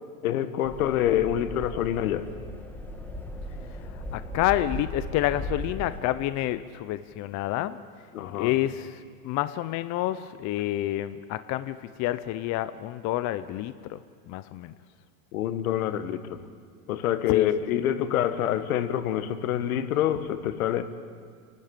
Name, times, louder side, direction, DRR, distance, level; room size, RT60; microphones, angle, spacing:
voice 1, 0.2-2.3 8.1-8.5 15.3-16.4 16.9-20.8, left 11 dB, 80° left, 11 dB, 1.5 m, -26 dB
sound 1, 0.6-6.0, left 1 dB, 5° left, 2.0 m, -37 dB
voice 2, 3.8-7.8 8.3-14.0 14.3-14.7 17.3-17.5, left 14 dB, 40° left, 13 dB, 0.8 m, -29 dB
29.0 x 12.0 x 7.6 m, 2.1 s
supercardioid pair, 120°, 42 cm